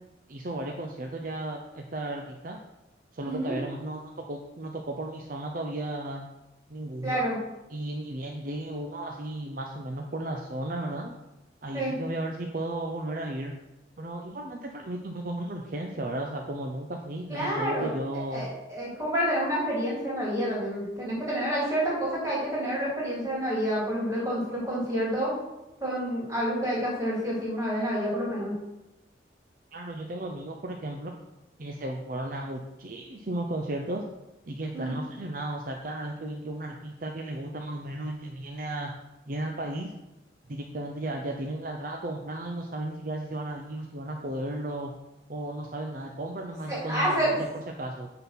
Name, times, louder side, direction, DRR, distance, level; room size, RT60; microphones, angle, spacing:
voice 1, 0.3-2.6 3.1-6.2 6.7-7.3 7.7-11.2 11.6-13.5 14.0-18.5 29.7-31.1 31.6-34.0 34.5-38.9 39.3-39.9 40.5-44.9 45.3-48.1, right 1 dB, 50° right, 2 dB, 0.6 m, -34 dB
voice 2, 7.0-7.4 11.7-11.9 17.3-17.9 18.3-25.3 25.8-28.5 34.7-34.9 46.7-47.4, equal, 15° right, -6 dB, 3.1 m, -28 dB
9.1 x 3.9 x 5.9 m, 0.96 s
head